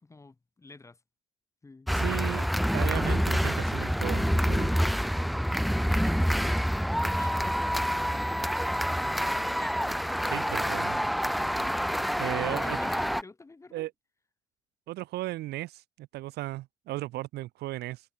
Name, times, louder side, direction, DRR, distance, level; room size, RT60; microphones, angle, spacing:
voice 1, 0.0-1.0 1.6-1.9 5.9-8.9 12.0-13.9, left 3 dB, 15° left, 2.0 m, -50 dB
sound 1, 1.9-13.2, equal, ahead, 0.3 m, -27 dB
voice 2, 1.9-4.7 10.3-11.0 12.2-12.8 13.7-13.9 14.9-18.0, right 17 dB, 75° right, 0.9 m, -35 dB
cardioid pair, 110°, 17 cm